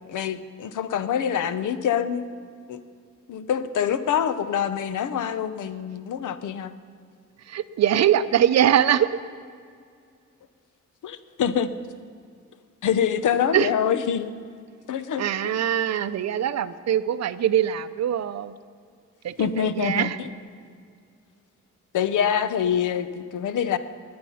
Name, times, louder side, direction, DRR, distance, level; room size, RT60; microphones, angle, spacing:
voice 1, 0.1-2.3 2.7-2.8 3.3-6.7 11.0-11.7 12.8-14.3 14.9-15.5 19.4-20.1 21.9-23.8, left 8 dB, 85° left, 12 dB, 0.8 m, -25 dB
voice 2, 7.4-9.2 13.5-13.7 15.2-18.6 19.2-20.2, right 10 dB, 60° right, 13 dB, 0.6 m, -22 dB
19.5 x 9.6 x 5.7 m, 2.2 s
wide cardioid pair, 170°, 30 cm